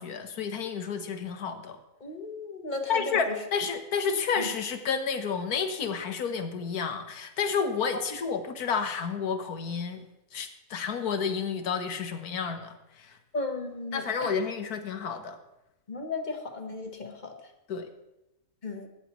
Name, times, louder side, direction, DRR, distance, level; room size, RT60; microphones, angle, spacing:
voice 1, 0.0-1.8 2.9-10.0 10.3-13.1 13.9-15.4 17.7-17.9, left 6 dB, 85° left, 8 dB, 1.6 m, -30 dB
voice 2, 2.0-3.2 4.4-4.5 13.3-14.3 15.9-17.3 18.6-18.9, left 3 dB, 35° left, 5 dB, 1.3 m, -35 dB
16.5 x 13.0 x 3.1 m, 0.94 s
omnidirectional pair, 1.5 m